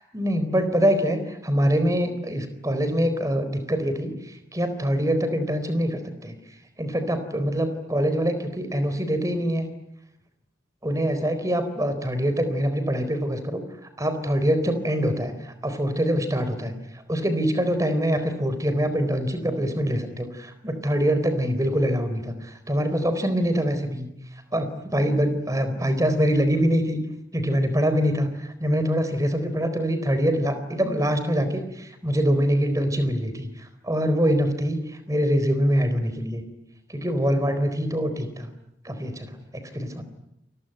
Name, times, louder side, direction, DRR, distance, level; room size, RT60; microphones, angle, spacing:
voice 1, 0.0-6.3 6.8-9.7 10.8-13.6 14.0-24.1 24.5-27.0 27.3-36.4 36.9-38.5 38.8-40.0, equal, 20° right, 10 dB, 4.1 m, -24 dB
28.5 x 22.5 x 9.2 m, 0.84 s
head